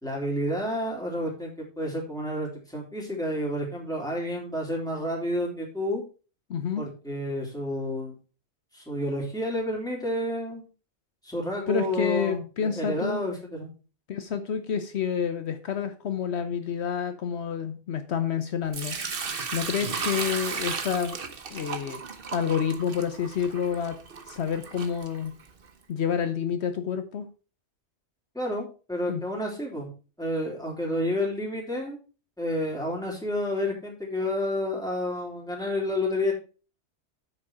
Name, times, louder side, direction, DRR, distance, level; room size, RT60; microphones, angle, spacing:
voice 1, 0.0-6.0 6.8-8.1 8.7-10.6 11.2-13.7 19.8-20.0 28.3-29.9 30.2-32.0 32.4-36.3, left 1 dB, 5° left, -2 dB, 3.5 m, -30 dB
voice 2, 6.5-6.8 11.7-13.3 14.1-21.2 21.5-22.0 22.3-24.0 24.3-25.3 25.9-27.3 29.1-29.2, left 7 dB, 70° left, 9 dB, 1.1 m, -29 dB
Sink (filling or washing) / Liquid, 18.7-25.7, right 5 dB, 55° right, 1.3 m, -35 dB
8.6 x 6.8 x 4.8 m, 0.34 s
omnidirectional pair, 1.2 m